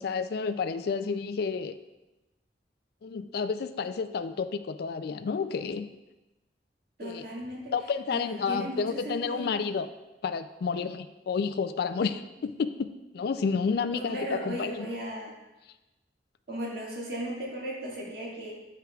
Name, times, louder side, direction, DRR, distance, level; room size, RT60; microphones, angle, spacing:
voice 1, 0.0-1.8 3.0-5.9 7.0-7.2 7.7-9.9 10.2-12.7 13.1-14.9, left 5 dB, 60° left, 11 dB, 0.3 m, -30 dB
voice 2, 7.0-7.7 8.1-9.5 13.9-15.3 16.5-18.5, equal, 60° right, -4 dB, 1.9 m, -36 dB
11.5 x 4.6 x 2.3 m, 1.1 s
head